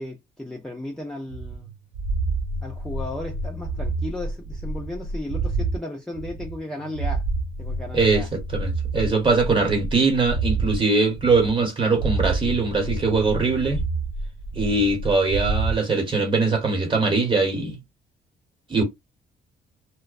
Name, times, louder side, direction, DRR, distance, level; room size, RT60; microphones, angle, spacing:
voice 1, 0.0-1.7 2.6-7.2 7.6-8.3, left 1 dB, 5° left, 0.5 m, -35 dB
sound 1, 1.3-5.8 6.1-10.8 11.1-11.7 11.9-15.8, right 3 dB, 70° right, 0.5 m, -28 dB
voice 2, 7.9-13.9 14.5-17.8 18.7-18.8, right 3 dB, 25° right, 1.0 m, -21 dB
2.5 x 2.1 x 2.4 m
cardioid pair, 90°, 20 cm